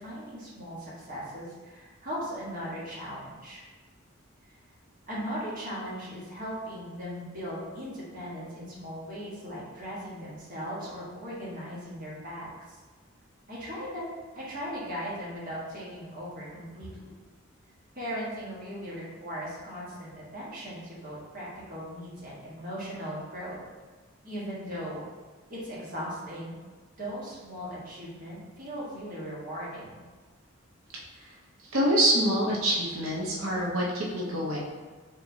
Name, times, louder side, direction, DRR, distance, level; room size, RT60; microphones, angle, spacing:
voice 1, 0.0-3.6 5.1-12.8 13.5-17.2 17.9-23.6 24.2-25.1 25.5-26.5 27.0-30.0, equal, 45° right, -7 dB, 1.4 m, -38 dB
voice 2, 31.7-34.6, right 1 dB, 80° right, -3 dB, 0.8 m, -25 dB
4.4 x 3.6 x 2.7 m, 1.3 s
head